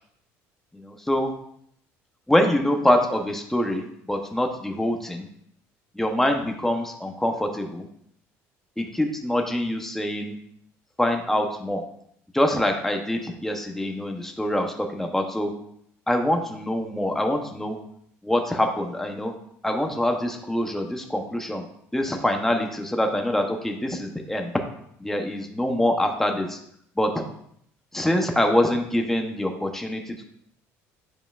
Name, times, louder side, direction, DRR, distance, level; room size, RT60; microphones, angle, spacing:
voice 1, 0.7-1.3 2.3-5.3 5.9-7.9 8.8-10.4 11.0-11.8 12.3-15.5 16.1-17.8 18.2-19.3 19.6-21.6 21.9-24.5 25.0-26.6 27.0-27.2 27.9-30.2, left 1 dB, 5° left, 3 dB, 0.8 m, -25 dB
7.9 x 4.9 x 2.5 m, 0.70 s
supercardioid pair, 95°, 6 cm